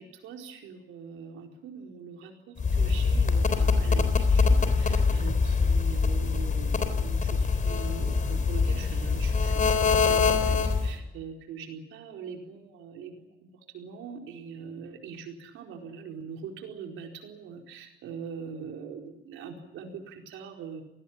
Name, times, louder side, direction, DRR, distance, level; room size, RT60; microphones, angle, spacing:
voice 1, 0.0-13.3 13.5-20.8, right 6 dB, 90° right, 2 dB, 4.6 m, -42 dB
sound 1, 2.6-11.0, left 4 dB, 40° left, 3.7 m, -24 dB
27.5 x 19.0 x 8.8 m, 0.88 s
cardioid pair, 90°, 20 cm